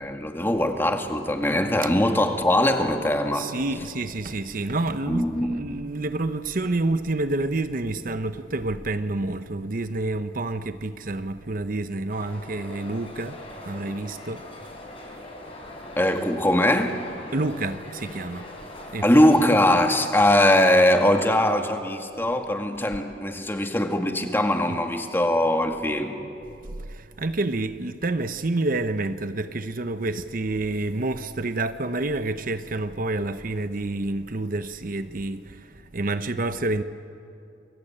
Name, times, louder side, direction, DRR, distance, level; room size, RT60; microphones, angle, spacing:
voice 1, 0.0-3.5 5.1-5.5 16.0-16.9 19.0-26.2, left 1 dB, 15° left, 2.0 m, -21 dB
voice 2, 3.3-14.5 17.3-18.5 18.9-19.1 24.7-24.8 26.6-36.8, right 2 dB, 50° right, 0.9 m, -28 dB
sound 1, 12.1-19.7, left 1 dB, 35° left, 5.3 m, -41 dB
29.5 x 22.5 x 8.8 m
head